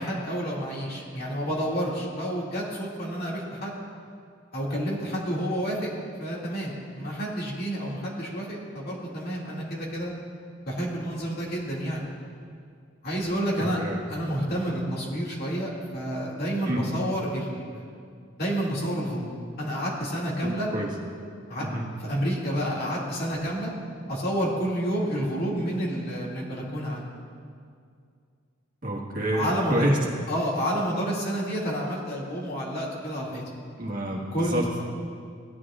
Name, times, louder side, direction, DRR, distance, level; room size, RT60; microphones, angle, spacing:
voice 1, 0.0-3.7 4.5-5.9 6.2-10.1 10.6-12.1 13.0-13.8 14.1-17.8 18.4-19.3 19.6-20.7 21.5-21.6 22.0-23.7 24.1-27.1 29.3-29.9 30.3-33.4 34.3-34.8, equal, 50° left, -4 dB, 2.4 m, -29 dB
voice 2, 13.6-14.0 16.7-16.9 20.4-20.9 21.6-21.8 28.8-30.0 33.8-34.6, right 1 dB, 45° right, -2 dB, 1.6 m, -28 dB
16.5 x 9.5 x 2.5 m, 2.3 s
head